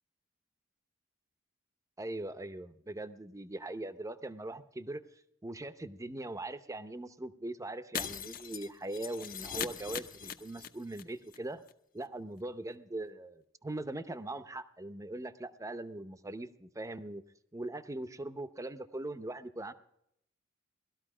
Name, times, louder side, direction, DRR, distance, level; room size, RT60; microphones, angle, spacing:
voice 1, 2.0-5.0 5.4-11.6 11.9-17.2 17.5-19.7, right 2 dB, 15° right, 12 dB, 0.7 m, -41 dB
Shatter, 7.9-11.0 11.3-11.4 11.7-11.8, left 7 dB, 45° left, 0.8 m, -40 dB
19.0 x 13.0 x 4.9 m, 0.76 s
head